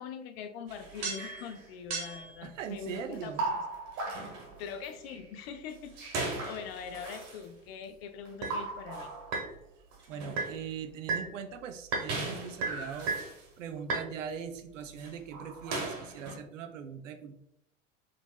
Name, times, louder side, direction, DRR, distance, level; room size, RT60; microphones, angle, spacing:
voice 1, 0.0-3.6 4.1-4.3 4.6-6.1 6.4-9.1, left 6 dB, 50° left, 9 dB, 0.5 m, -42 dB
sound 1, 0.7-1.6 1.9-2.3 2.9-5.2 5.9-7.4 8.2-9.6 9.9-10.6 11.1-11.3 11.9-13.4 13.8-14.1 14.8-16.3, right 3 dB, 40° right, 1.0 m, -36 dB
voice 2, 2.4-3.4 10.1-13.2 13.6-17.3, right 7 dB, 70° right, 7 dB, 0.5 m, -41 dB
3.8 x 2.5 x 2.3 m, 0.78 s
figure-of-eight pair, 75°, 39 cm